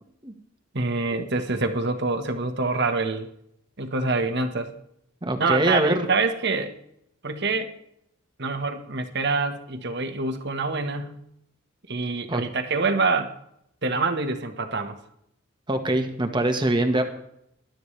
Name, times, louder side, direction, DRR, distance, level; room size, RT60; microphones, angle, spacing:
voice 1, 0.7-3.3 3.8-4.7 5.4-6.7 7.2-7.7 8.4-11.2 11.9-13.3 13.8-15.0, right 3 dB, 55° right, 6 dB, 1.4 m, -26 dB
voice 2, 5.2-6.1 12.3-12.4 15.7-17.0, right 1 dB, 20° right, 5 dB, 1.4 m, -23 dB
20.5 x 12.0 x 3.3 m, 0.74 s
head